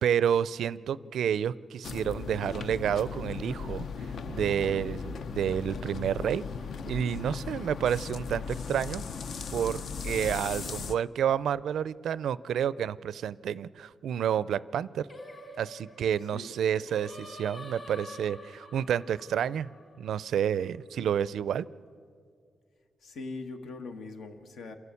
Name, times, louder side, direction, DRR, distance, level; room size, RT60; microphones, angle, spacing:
voice 1, 0.0-3.9 4.3-6.4 6.9-9.0 9.5-15.1 15.6-19.7 20.0-21.6, right 9 dB, 85° right, 19 dB, 0.4 m, -29 dB
voice 2, 0.7-1.1 16.3-17.2 23.0-24.8, left 3 dB, 75° left, 7 dB, 1.6 m, -43 dB
sound 1, 1.8-10.9, left 5 dB, 60° left, 0.6 m, -37 dB
Singing, 15.1-20.4, left 1 dB, 40° left, 3.6 m, -47 dB
28.0 x 11.5 x 8.4 m, 2.3 s
wide cardioid pair, 145°, 0 cm